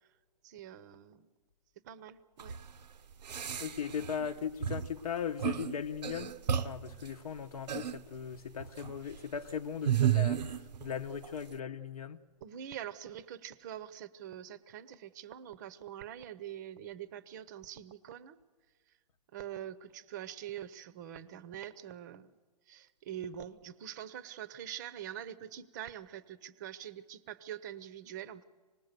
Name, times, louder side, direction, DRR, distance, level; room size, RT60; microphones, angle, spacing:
voice 1, 0.4-1.3 1.8-2.5 4.0-4.1 12.4-18.4 19.3-22.4 22.7-28.4, right 10 dB, 25° right, 0.7 m, -44 dB
sound 1, 2.4-2.6 3.3-4.3 4.6-4.9 5.4-5.7 6.0-7.0 7.7-8.0 8.6-9.0 9.9-10.9 11.2-11.3, right 10 dB, 90° right, 0.8 m, -32 dB
voice 2, 3.6-6.4 6.6-12.2, left 7 dB, 60° left, 0.9 m, -38 dB
25.5 x 19.5 x 6.7 m
hypercardioid pair, 165°, 21 cm